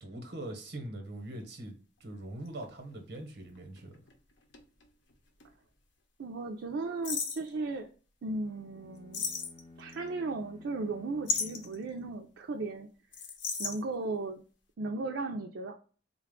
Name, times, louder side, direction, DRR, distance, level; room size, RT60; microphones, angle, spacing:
voice 1, 0.0-4.0, right 1 dB, 65° right, 1.0 m, -42 dB
sound 1, 1.4-1.5 2.5-5.1 5.4-5.5 7.0-7.5 9.1-9.9 11.3-11.8 13.1-13.8, left 5 dB, 90° left, 0.8 m, -35 dB
voice 2, 6.2-7.9 8.2-9.2 9.8-12.9 13.6-14.4 14.8-15.8, right 3 dB, 80° right, 0.4 m, -36 dB
sound 2, 8.4-12.8, left 3 dB, 25° left, 0.5 m, -55 dB
3.9 x 2.3 x 3.6 m
head